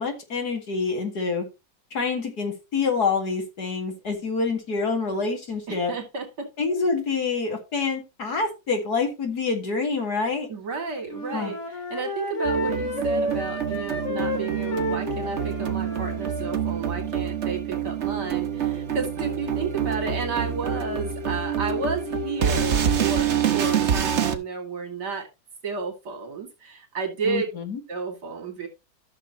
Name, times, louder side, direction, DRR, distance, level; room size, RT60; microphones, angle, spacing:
voice 1, 0.0-1.5 1.9-5.9 6.6-10.5 11.3-11.5 27.3-27.8, left 4 dB, 60° left, 4 dB, 2.7 m, -27 dB
voice 2, 5.7-6.5 10.5-25.3 25.6-27.5 27.9-28.7, right 4 dB, 65° right, 3 dB, 3.1 m, -32 dB
Wind instrument woodwind instrument, 11.1-16.6, left 1 dB, 40° left, 2.4 m, -30 dB
sound 1, 12.4-24.4, right 8 dB, 45° right, 1.1 m, -27 dB
13.5 x 6.7 x 3.1 m, 0.25 s
omnidirectional pair, 1.9 m